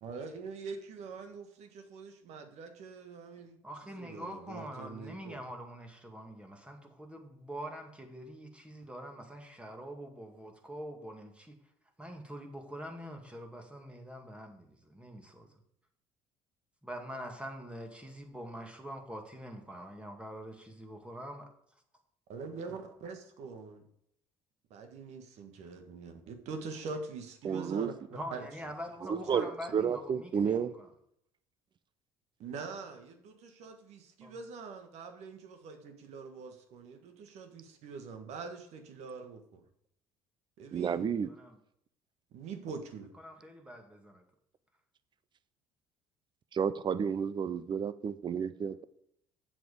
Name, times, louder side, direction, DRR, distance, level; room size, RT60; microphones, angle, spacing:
voice 1, 0.0-3.6 3.9-5.4 22.3-23.8 24.7-28.4 29.1-29.5 29.8-29.9 32.4-39.6 40.6-41.1 42.3-43.1, right 4 dB, 60° right, 6 dB, 1.6 m, -44 dB
voice 2, 3.6-11.5 12.0-15.5 16.8-21.5 28.1-30.9 34.2-34.4 41.2-41.6 43.2-44.2, equal, 10° right, 3 dB, 2.1 m, -44 dB
voice 3, 27.4-27.9 29.0-30.7 40.7-41.3 46.5-48.8, right 7 dB, 35° right, 15 dB, 0.7 m, -31 dB
7.6 x 7.5 x 5.2 m, 0.72 s
hypercardioid pair, 60°, 13 cm